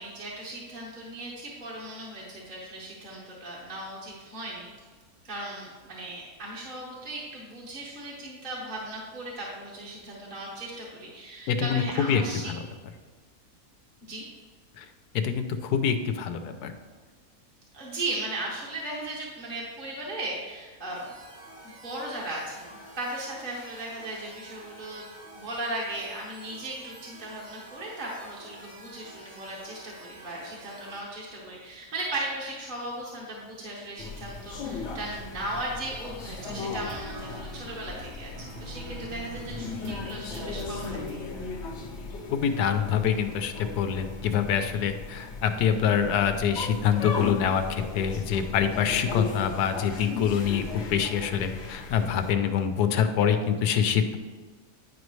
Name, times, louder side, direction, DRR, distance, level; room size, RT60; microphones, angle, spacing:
voice 1, 0.0-4.7 5.2-12.5 14.1-14.3 17.7-21.1 21.8-25.1 25.3-41.2, right 1 dB, 35° right, -5 dB, 1.2 m, -37 dB
voice 2, 11.5-12.6 14.8-14.9 15.1-16.7 42.3-54.2, left 8 dB, 90° left, 8 dB, 1.2 m, -25 dB
sound 1, 20.9-31.0, right 1 dB, 60° right, 2.2 m, -49 dB
sound 2, 34.0-52.3, left 4 dB, 55° left, 1.0 m, -37 dB
sound 3, 36.3-41.2, right 2 dB, 85° right, 1.6 m, -43 dB
9.8 x 5.3 x 3.1 m, 1.5 s
omnidirectional pair, 1.6 m